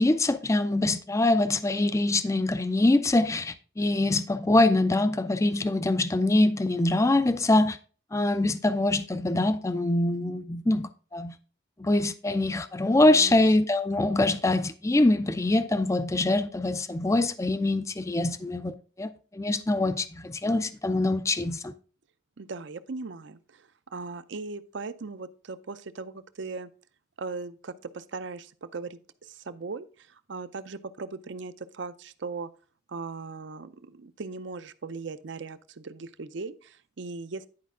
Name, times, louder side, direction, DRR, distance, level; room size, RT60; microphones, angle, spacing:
voice 1, 0.0-7.8 8.1-11.3 11.8-21.7, left 2 dB, 15° left, 0.4 m, -24 dB
voice 2, 13.1-13.4 22.4-26.7 27.2-32.5 32.9-37.5, right 4 dB, 60° right, 0.6 m, -38 dB
10.5 x 5.1 x 3.7 m
head